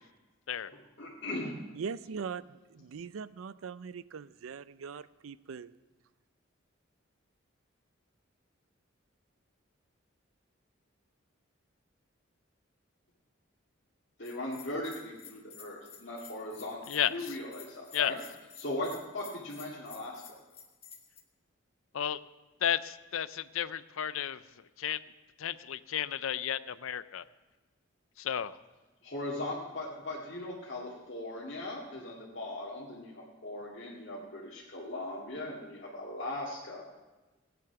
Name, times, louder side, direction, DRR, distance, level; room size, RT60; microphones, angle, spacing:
voice 1, 1.0-1.6 14.2-16.8 17.1-18.2 18.6-20.2 29.0-36.8, left 1 dB, 60° left, -6 dB, 2.1 m, -39 dB
voice 2, 1.7-5.7, right 6 dB, 85° right, 17 dB, 0.4 m, -41 dB
Bell, 14.2-21.2, left 7 dB, 30° left, 1.3 m, -51 dB
voice 3, 16.9-17.4 17.9-18.1 21.9-22.2 22.6-24.4 24.8-25.0 25.4-27.2 28.2-28.5, left 9 dB, 85° left, 15 dB, 0.5 m, -32 dB
16.5 x 9.5 x 5.9 m, 1.2 s
head